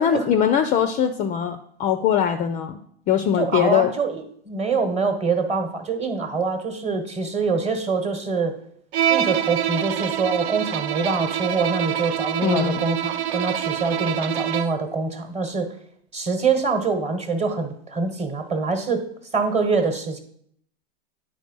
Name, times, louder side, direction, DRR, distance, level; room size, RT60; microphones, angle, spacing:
voice 1, 0.0-2.8 3.1-3.9 12.4-12.8, left 9 dB, 25° left, 9 dB, 0.4 m, -21 dB
voice 2, 3.4-8.6 9.1-15.7 16.1-19.0 19.3-20.2, right 4 dB, 20° right, 8 dB, 1.1 m, -24 dB
Bowed string instrument, 8.9-14.9, right 10 dB, 85° right, 0.6 m, -26 dB
9.2 x 4.4 x 5.3 m, 0.67 s
hypercardioid pair, 120°, 31 cm